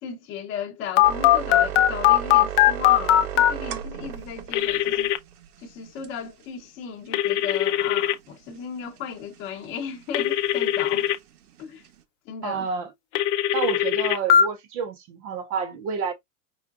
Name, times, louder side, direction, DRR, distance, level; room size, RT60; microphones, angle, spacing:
voice 1, 0.0-5.1 5.6-11.1 11.6-11.8 12.3-12.7, left 7 dB, 25° left, 0.8 m, -35 dB
Telephone, 1.0-3.5 4.5-5.2 7.1-8.1 10.1-11.2 13.2-14.4, left 12 dB, 55° left, 0.6 m, -19 dB
sound 1, 1.0-6.3 7.9-12.0, right 10 dB, 80° right, 1.0 m, -35 dB
voice 2, 12.4-12.9 13.5-16.1, right 6 dB, 25° right, 0.5 m, -29 dB
5.0 x 3.6 x 2.4 m
supercardioid pair, 170°, 44 cm